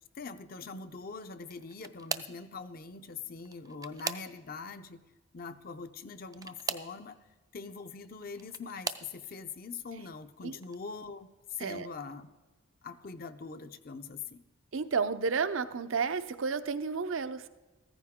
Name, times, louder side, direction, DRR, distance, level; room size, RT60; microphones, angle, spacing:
voice 1, 0.1-5.0 5.3-7.2 7.5-12.3 12.8-14.4, left 4 dB, 45° left, 9 dB, 0.6 m, -43 dB
sound 1, 1.4-2.5 3.4-4.7 6.3-7.0 8.0-9.1 9.9-10.2 10.6-10.8 12.1-12.2, right 6 dB, 20° right, 0.4 m, -39 dB
voice 2, 14.7-17.5, right 5 dB, 75° right, 12 dB, 0.6 m, -31 dB
14.5 x 14.0 x 3.6 m, 1.3 s
head